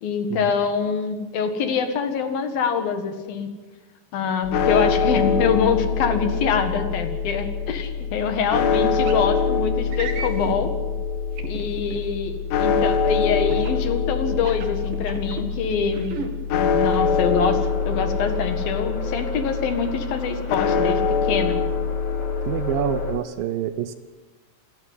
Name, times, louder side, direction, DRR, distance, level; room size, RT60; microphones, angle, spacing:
voice 1, 0.0-3.5 4.1-10.7 11.5-16.2 16.5-21.6, left 6 dB, 65° left, 7 dB, 3.5 m, -25 dB
sound 1, 4.4-23.2, left 5 dB, 85° left, 3.4 m, -24 dB
sound 2, 9.0-9.2 9.9-10.6 11.4-12.0 13.5-13.8 14.3-15.4 15.9-16.3, right 6 dB, 60° right, 3.8 m, -33 dB
sound 3, 17.0-23.1, equal, 45° left, 5.9 m, -37 dB
voice 2, 22.5-23.9, right 10 dB, 75° right, 12 dB, 2.3 m, -27 dB
28.5 x 12.5 x 9.8 m, 1.3 s
omnidirectional pair, 4.7 m